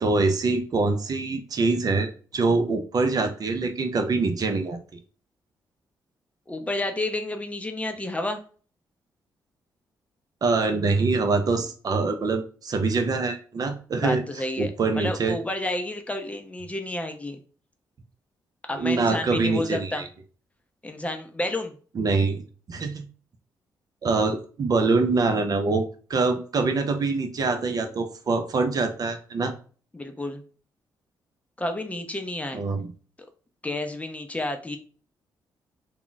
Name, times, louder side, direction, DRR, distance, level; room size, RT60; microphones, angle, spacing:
voice 1, 0.0-4.8 10.4-14.2 14.6-15.4 18.8-20.0 22.0-22.4 22.7-23.0 24.0-29.5 32.5-32.9, right 3 dB, 50° right, 6 dB, 0.5 m, -24 dB
voice 2, 6.5-8.4 14.0-17.4 18.7-20.0 20.8-21.7 29.9-30.4 31.6-32.6 33.6-34.8, left 1 dB, 15° left, 5 dB, 0.5 m, -30 dB
2.3 x 2.0 x 3.8 m, 0.40 s
cardioid pair, 65°, 8 cm